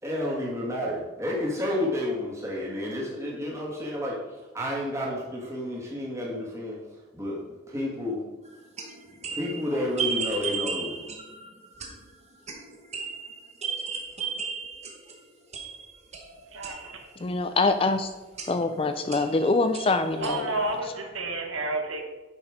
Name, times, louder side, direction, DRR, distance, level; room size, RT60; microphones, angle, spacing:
voice 1, 0.0-8.2 9.3-11.1, left 1 dB, 15° right, -4 dB, 2.1 m, -31 dB
sound 1, 8.5-15.2 15.5-17.2 18.3-18.8 19.1-20.8, right 6 dB, 35° right, 1.2 m, -35 dB
voice 2, 16.5-17.1 20.2-22.1, right 2 dB, 80° right, 4 dB, 1.4 m, -31 dB
voice 3, 17.2-18.1 18.5-20.5, left 3 dB, 25° left, 9 dB, 0.4 m, -24 dB
9.1 x 5.6 x 5.2 m, 1.1 s
head